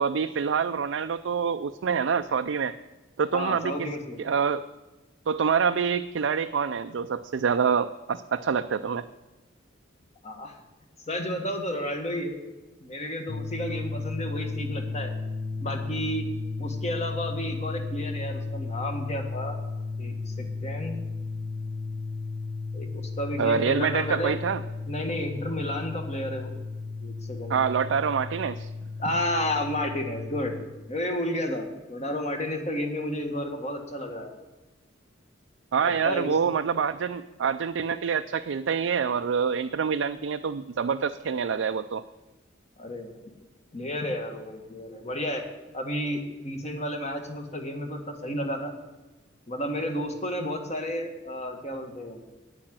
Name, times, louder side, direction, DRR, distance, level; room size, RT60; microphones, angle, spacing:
voice 1, 0.0-2.8 3.2-3.7 4.2-4.6 5.3-9.0 23.4-24.6 27.5-28.7 35.7-42.0, right 6 dB, 70° right, 8 dB, 0.4 m, -26 dB
voice 2, 3.3-4.2 10.2-10.5 11.1-12.4 12.8-15.1 15.6-16.2 16.6-19.6 20.0-21.0 22.7-24.3 24.9-26.5 27.0-27.6 29.0-30.6 30.9-34.3 35.8-36.3 42.8-43.1 43.7-45.4 45.7-48.7 49.5-52.2, left 1 dB, 35° left, 5 dB, 1.7 m, -32 dB
sound 1, 13.3-30.6, left 3 dB, 50° left, 1.0 m, -34 dB
9.7 x 8.7 x 7.6 m, 1.2 s
head